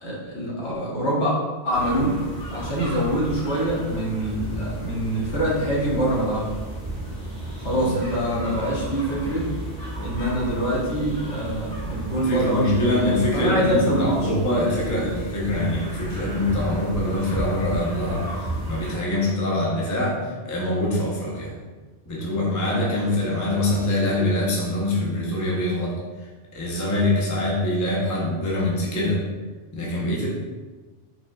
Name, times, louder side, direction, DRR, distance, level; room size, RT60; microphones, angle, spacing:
voice 1, 0.0-1.3 1.6-2.2 2.5-6.6 7.6-9.5 10.0-12.9 13.3-14.3, equal, 60° left, -6 dB, 1.4 m, -24 dB
sound 1, 1.7-18.9, right 1 dB, 75° left, 1.9 m, -33 dB
voice 2, 12.2-21.6 22.1-26.0 26.5-29.2 29.7-30.3, left 1 dB, 20° left, -4 dB, 0.6 m, -24 dB
4.8 x 3.7 x 2.3 m, 1.3 s
omnidirectional pair, 1.3 m